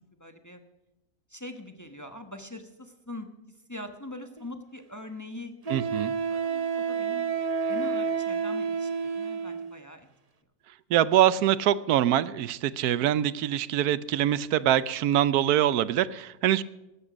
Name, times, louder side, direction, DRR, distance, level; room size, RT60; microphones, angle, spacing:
voice 1, 0.2-0.6 1.3-3.3 3.7-5.5 6.2-7.3 7.7-10.1, left 1 dB, 15° left, 7 dB, 1.0 m, -42 dB
Wind instrument woodwind instrument, 4.4-4.5 5.7-9.7, right 6 dB, 30° right, 0.7 m, -29 dB
voice 2, 5.7-6.1 10.9-16.6, right 11 dB, 85° right, 17 dB, 1.1 m, -24 dB
15.0 x 12.5 x 5.1 m, 1.0 s
omnidirectional pair, 1.6 m